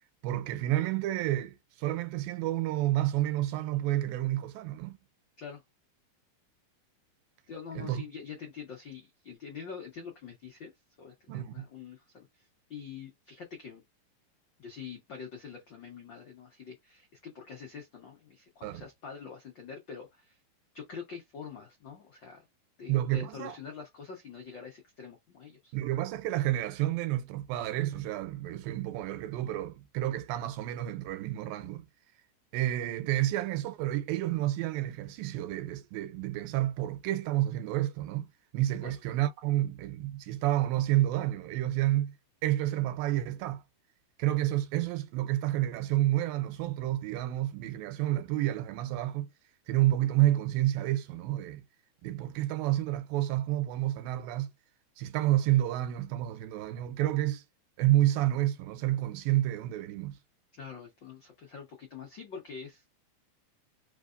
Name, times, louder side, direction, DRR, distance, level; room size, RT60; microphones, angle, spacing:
voice 1, 0.2-5.0 7.8-8.0 11.3-11.7 18.6-18.9 22.9-23.6 25.7-31.9 32.5-38.3 38.5-42.1 42.4-43.6 44.2-49.3 49.7-51.6 52.0-54.5 55.0-57.4 57.8-60.2, right 14 dB, 85° right, 2.5 m, -29 dB
voice 2, 7.5-10.7 11.0-13.8 14.6-20.4 20.7-22.4 22.8-25.7 38.8-38.9 60.5-62.9, left 6 dB, 85° left, 1.0 m, -45 dB
4.8 x 3.4 x 2.5 m
omnidirectional pair, 4.1 m